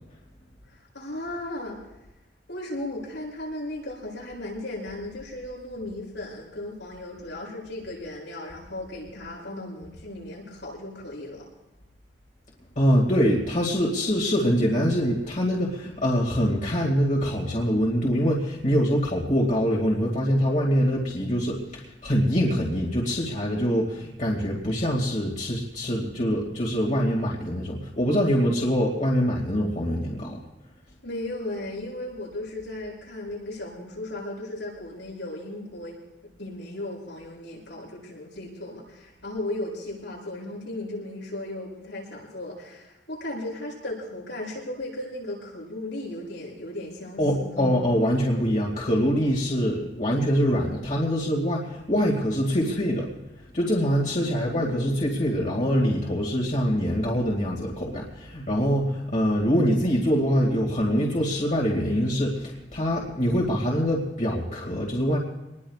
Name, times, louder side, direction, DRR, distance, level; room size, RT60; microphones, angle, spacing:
voice 1, 0.7-1.8 2.5-11.5 31.0-36.0 36.4-47.7 54.2-54.8, left 1 dB, 85° left, -5 dB, 7.8 m, -36 dB
voice 2, 12.8-30.4 47.2-53.1 53.5-65.2, equal, 45° left, -3 dB, 2.3 m, -24 dB
25.5 x 20.5 x 2.5 m, 0.96 s
head